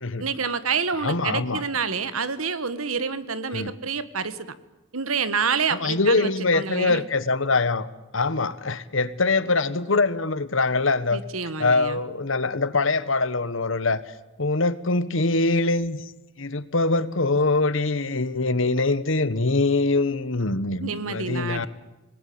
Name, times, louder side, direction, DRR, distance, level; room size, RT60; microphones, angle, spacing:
voice 1, 0.2-4.5 4.9-7.0 11.1-12.0 20.8-21.7, right 5 dB, 90° right, 14 dB, 1.7 m, -28 dB
voice 2, 1.0-1.6 3.5-3.7 5.7-7.9 8.1-11.2 11.6-14.0 14.4-16.0 16.4-21.7, left 3 dB, 65° left, 15 dB, 1.4 m, -23 dB
26.0 x 20.0 x 8.7 m, 1.1 s
head